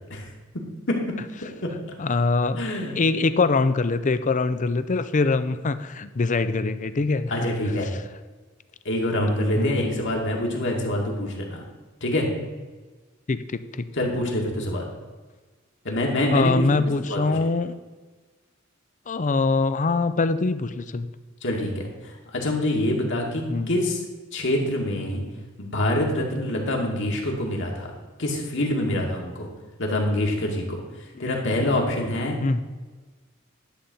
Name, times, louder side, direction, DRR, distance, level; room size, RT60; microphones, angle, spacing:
voice 1, 2.0-2.6 3.0-7.3 9.6-10.0 13.3-13.9 16.3-17.8 19.1-21.1 23.5-23.7 32.4-32.6, left 3 dB, 40° left, 13 dB, 0.5 m, -23 dB
voice 2, 2.6-3.0 7.3-7.9 8.8-11.6 12.0-12.3 14.0-14.9 15.8-17.4 21.4-24.0 24.3-25.2 25.6-27.9 28.2-29.5 29.8-30.8 31.2-32.4, left 1 dB, 65° left, 0 dB, 2.2 m, -25 dB
11.5 x 4.3 x 7.8 m, 1.3 s
head